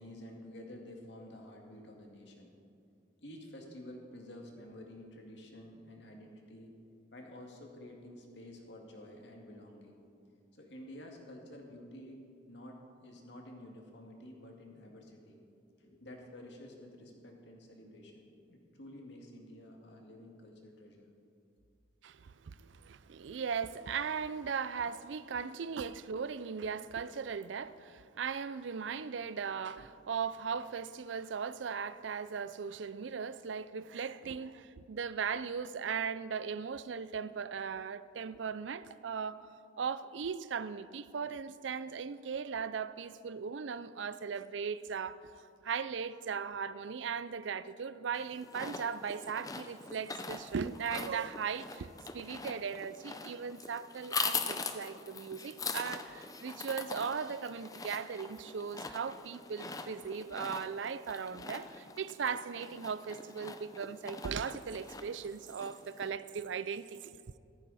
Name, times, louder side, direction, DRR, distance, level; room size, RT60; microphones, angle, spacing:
voice 1, 0.0-2.6 3.2-6.8 7.1-10.0 10.5-15.4 15.8-21.1, left 1 dB, 65° left, 2.2 m, -50 dB
voice 2, 22.0-39.5 39.8-45.2 45.6-67.2, right 6 dB, 80° right, 0.5 m, -38 dB
sound 1, 48.1-66.1, left 4 dB, 20° left, 0.6 m, -42 dB
15.0 x 14.0 x 4.2 m
head